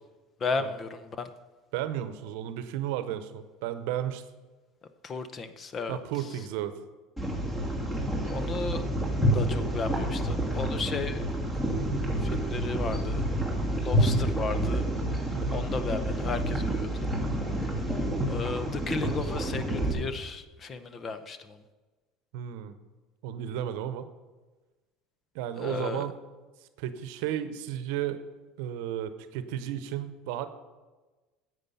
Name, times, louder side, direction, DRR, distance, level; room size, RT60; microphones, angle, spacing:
voice 1, 0.4-1.3 5.0-6.3 8.3-8.8 9.3-11.3 12.2-13.3 13.8-14.9 15.5-17.1 18.3-21.6 25.6-26.1, left 4 dB, 35° left, 11 dB, 0.8 m, -34 dB
voice 2, 1.7-4.2 5.9-6.7 15.3-15.7 22.3-22.8 23.2-24.1 25.3-26.1 26.8-28.2 28.6-30.5, right 11 dB, 75° right, 12 dB, 0.8 m, -33 dB
sound 1, 7.2-19.9, right 1 dB, 10° left, 2.4 m, -28 dB
9.8 x 7.9 x 5.5 m, 1.2 s
supercardioid pair, 110°, 0 cm